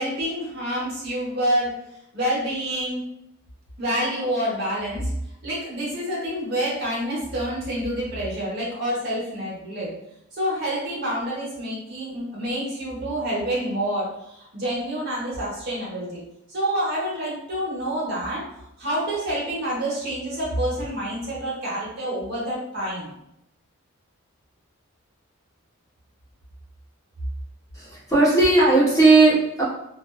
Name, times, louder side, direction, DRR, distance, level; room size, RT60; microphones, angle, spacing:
voice 1, 0.0-1.8 2.1-3.0 3.8-5.1 5.4-9.9 10.3-16.2 16.5-18.5 18.8-23.1, right 1 dB, 50° right, -6 dB, 1.0 m, -27 dB
voice 2, 27.7-29.6, right 3 dB, 15° left, -7 dB, 0.5 m, -17 dB
2.6 x 2.2 x 2.2 m, 0.81 s
head